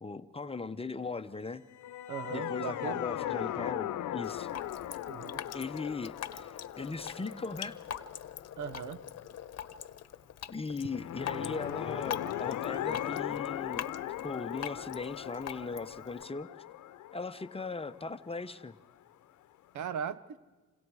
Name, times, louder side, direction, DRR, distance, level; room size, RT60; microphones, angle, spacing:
voice 1, 0.0-1.6 2.3-4.5 5.5-7.8 10.5-13.9 14.2-16.5 17.1-18.7, left 4 dB, 20° left, 10 dB, 0.8 m, -39 dB
sound 1, 1.7-9.0 10.8-18.6, left 12 dB, 75° left, 0.9 m, -38 dB
voice 2, 2.1-3.0 5.1-5.4 8.6-9.0 19.7-20.4, right 8 dB, 75° right, 15 dB, 1.0 m, -38 dB
Drip, 4.2-16.2, left 9 dB, 55° left, 1.0 m, -43 dB
29.0 x 26.5 x 4.8 m, 1.3 s
cardioid pair, 90°, 30 cm